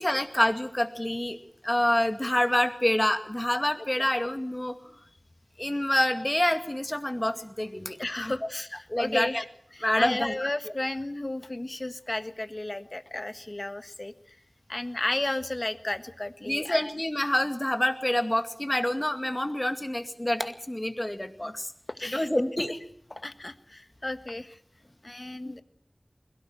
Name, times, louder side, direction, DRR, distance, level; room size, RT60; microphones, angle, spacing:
voice 1, 0.0-1.4 1.6-4.8 5.6-8.3 8.9-9.4 9.8-10.5 16.5-21.7 22.1-22.8 25.4-25.6, left 1 dB, 25° left, 6 dB, 2.3 m, -27 dB
voice 2, 8.0-9.4 9.7-14.4 14.7-16.9 21.9-22.3 23.1-24.6 25.0-25.6, left 2 dB, 50° left, 9 dB, 1.5 m, -33 dB
22.0 x 17.5 x 7.8 m, 0.65 s
wide cardioid pair, 45°, 0 cm